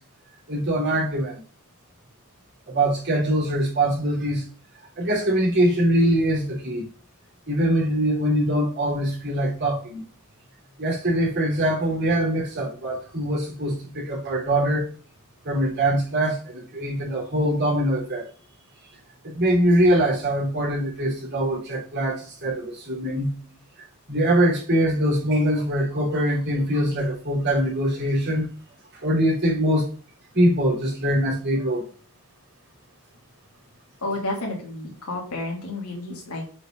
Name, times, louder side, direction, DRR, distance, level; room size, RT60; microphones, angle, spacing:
voice 1, 0.5-1.4 2.7-4.4 5.0-6.8 7.5-10.0 10.8-14.9 15.5-18.2 19.3-23.3 24.1-28.4 29.0-29.9 30.3-31.8, right 1 dB, 50° right, -4 dB, 3.9 m, -23 dB
voice 2, 34.0-36.5, left 2 dB, 85° left, -1 dB, 3.1 m, -31 dB
7.8 x 5.2 x 4.1 m, 0.41 s
head